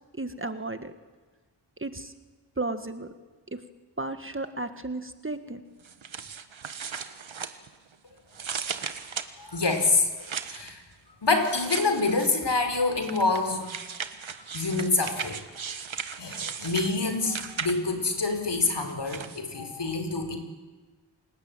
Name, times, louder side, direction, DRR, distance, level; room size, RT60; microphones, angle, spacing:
voice 1, 0.2-0.9 1.8-2.1 2.6-3.1 3.5-3.6 4.0-5.6, right 2 dB, 25° right, 9 dB, 1.7 m, -34 dB
sound 1, 5.8-7.9 8.3-10.7 11.4-12.4 13.0-18.0 18.7-19.4, right 6 dB, 90° right, 1.5 m, -37 dB
voice 2, 9.4-10.8 11.2-13.7 14.5-15.4 16.2-20.4, left 3 dB, 60° left, 6 dB, 4.2 m, -26 dB
29.5 x 20.0 x 9.0 m, 1.3 s
wide cardioid pair, 80°, 46 cm